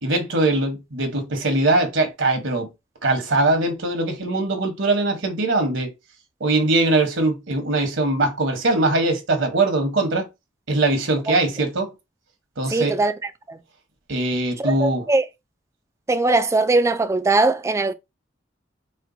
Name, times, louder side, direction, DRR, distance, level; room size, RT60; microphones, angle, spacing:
voice 1, 0.0-2.7 3.0-5.9 6.4-10.3 10.7-11.9 12.6-13.0 14.1-15.0, right 2 dB, 70° right, 1.1 m, -21 dB
voice 2, 12.7-13.1 13.5-13.6 14.6-15.2 16.1-17.9, right 2 dB, 15° right, 0.3 m, -20 dB
4.3 x 2.2 x 3.8 m
head